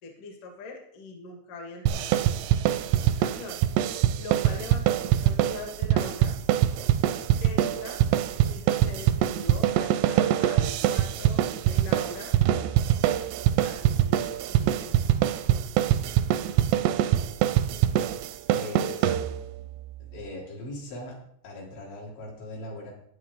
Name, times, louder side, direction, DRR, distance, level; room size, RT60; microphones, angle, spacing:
voice 1, 0.0-3.6 4.2-6.4 7.4-12.3 13.1-15.6, left 3 dB, 55° left, 1 dB, 3.1 m, -43 dB
sound 1, 1.9-19.6, right 12 dB, 80° right, 2.6 m, -24 dB
voice 2, 18.5-19.2 20.0-22.9, left 2 dB, 80° left, -3 dB, 5.8 m, -39 dB
16.0 x 10.0 x 3.8 m, 0.71 s
omnidirectional pair, 5.1 m